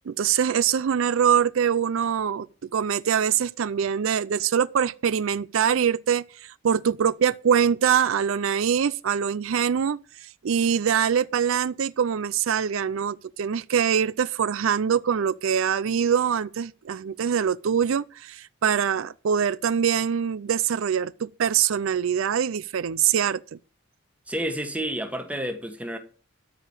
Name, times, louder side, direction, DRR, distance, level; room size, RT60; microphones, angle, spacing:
voice 1, 0.1-23.4, right 8 dB, 75° right, 0.4 m, -24 dB
voice 2, 24.3-26.0, right 1 dB, 5° right, 1.3 m, -30 dB
13.0 x 5.0 x 8.8 m
head